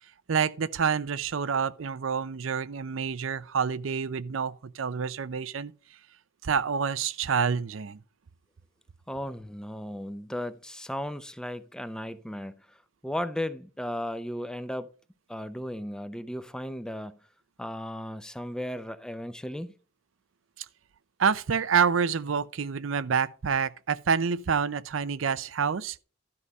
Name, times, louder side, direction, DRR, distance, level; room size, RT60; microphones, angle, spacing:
voice 1, 0.3-5.7 6.4-8.0 21.2-26.0, right 6 dB, 85° right, 0.5 m, -27 dB
voice 2, 9.1-12.8 13.0-14.9 15.3-17.2 17.6-19.8, left 1 dB, 5° left, 0.6 m, -35 dB
12.5 x 4.8 x 5.4 m
head